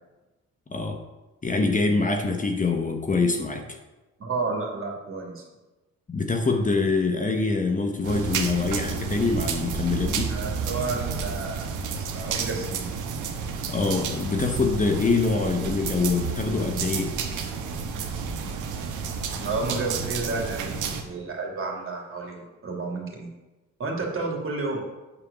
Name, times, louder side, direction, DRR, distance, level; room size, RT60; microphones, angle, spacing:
voice 1, 1.4-3.6 6.1-10.3 13.7-17.1, left 3 dB, 25° left, 4 dB, 1.1 m, -24 dB
voice 2, 4.2-5.4 10.3-12.9 19.4-23.3 23.8-24.8, right 3 dB, 45° right, -1 dB, 2.9 m, -31 dB
sound 1, 8.0-21.0, right 6 dB, 85° right, 1.3 m, -31 dB
8.8 x 4.9 x 6.9 m, 1.1 s
cardioid pair, 90°, 30 cm